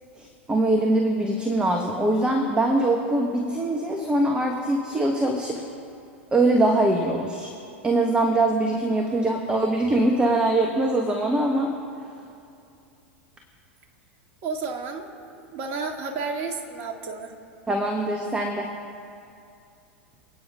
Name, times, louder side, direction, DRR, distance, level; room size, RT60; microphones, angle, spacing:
voice 1, 0.2-5.6 6.3-7.5 7.8-11.7 17.7-18.7, right 2 dB, 15° right, 2 dB, 1.5 m, -23 dB
voice 2, 14.4-15.1 15.5-17.3, right 4 dB, 40° right, 3 dB, 2.1 m, -31 dB
28.0 x 9.4 x 3.8 m, 2.5 s
figure-of-eight pair, 90°, 7 cm